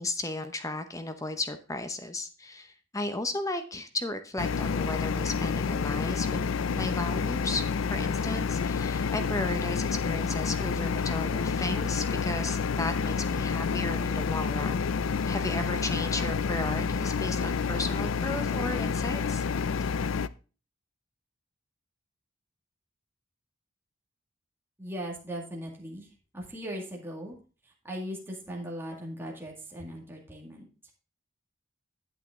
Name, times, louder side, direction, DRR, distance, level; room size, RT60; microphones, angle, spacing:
voice 1, 0.0-7.6 7.9-14.8 15.3-19.4, left 2 dB, 15° left, 9 dB, 0.8 m, -34 dB
sound 1, 4.4-20.3, left 5 dB, 75° left, 0.4 m, -29 dB
voice 2, 24.8-27.4 27.6-30.7, equal, 10° right, -1 dB, 2.0 m, -39 dB
8.9 x 8.4 x 3.7 m, 0.35 s
head